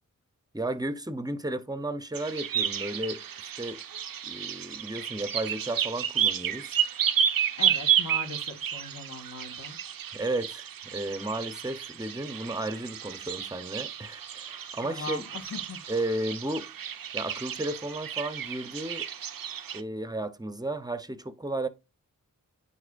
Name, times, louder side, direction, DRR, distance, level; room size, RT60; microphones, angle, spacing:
voice 1, 0.5-3.8 4.2-6.8 10.1-15.2 15.9-19.1 19.7-21.7, right 2 dB, 10° right, 0.8 m, -34 dB
sound 1, 2.1-19.8, right 9 dB, 85° right, 0.7 m, -31 dB
voice 2, 7.6-9.8 14.8-15.8, left 4 dB, 50° left, 1.8 m, -39 dB
9.6 x 4.3 x 2.6 m
wide cardioid pair, 75°, 33 cm